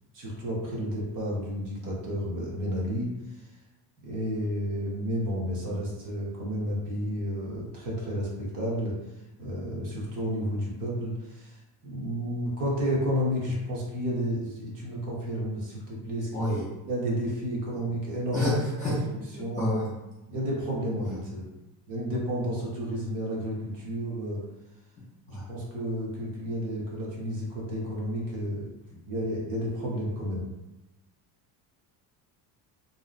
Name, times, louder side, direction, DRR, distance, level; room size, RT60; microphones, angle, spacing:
voice 1, 0.1-3.1 4.0-8.9 9.4-11.5 11.8-18.5 18.9-19.7 20.3-21.4 21.9-24.4 25.3-28.7 29.1-30.4, equal, 50° right, -4 dB, 0.8 m, -31 dB
voice 2, 16.3-16.6 17.7-17.8 18.3-19.0 19.3-19.9 21.0-21.2 25.3-25.4, left 1 dB, 20° left, -9 dB, 0.3 m, -29 dB
2.6 x 2.0 x 2.4 m, 0.98 s
cardioid pair, 170°, 41 cm